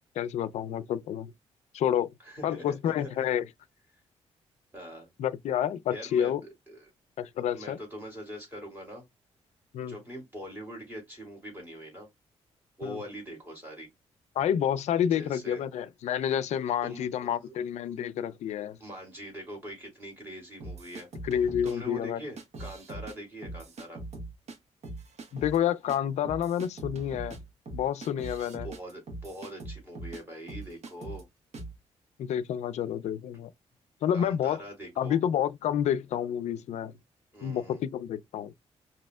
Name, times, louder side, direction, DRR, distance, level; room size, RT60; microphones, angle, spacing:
voice 1, 0.0-1.3 1.7-2.1 2.4-3.4 5.2-6.4 7.2-7.8 9.7-9.9 12.8-13.0 14.4-18.8 21.2-22.2 25.3-27.4 27.7-28.7 32.2-33.5 34.0-34.6 35.0-36.9 37.4-38.5, left 9 dB, 75° left, 0.4 m, -29 dB
voice 2, 2.2-3.3 4.7-5.1 5.9-6.9 7.5-9.0 9.9-12.1 12.8-13.9 15.1-15.6 16.8-17.1 17.5-17.6 18.8-21.1 21.6-24.0 28.6-31.2 34.1-35.2 37.3-37.8, equal, 20° right, 2.8 m, -43 dB
sound 1, 20.6-21.7 22.4-23.1 23.4-24.6 24.8-25.6 25.9-26.0 26.2-30.2 30.5-31.2 31.5-31.8, right 2 dB, 70° right, 1.1 m, -41 dB
5.2 x 2.8 x 2.2 m
cardioid pair, 130°, 12 cm